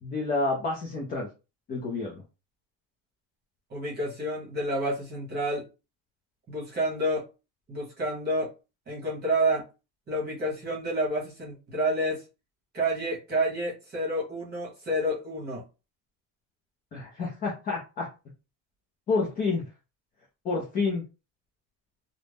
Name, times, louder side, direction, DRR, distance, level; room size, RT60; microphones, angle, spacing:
voice 1, 0.0-1.3 1.7-2.1 16.9-18.1 19.1-19.6 20.4-21.0, left 3 dB, 20° left, -2 dB, 0.4 m, -29 dB
voice 2, 3.7-5.6 6.5-7.2 7.7-8.5 8.9-9.6 10.1-12.2 12.7-15.6, right 1 dB, 20° right, -4 dB, 1.0 m, -29 dB
2.5 x 2.1 x 3.3 m, 0.30 s
cardioid pair, 170°, 45 cm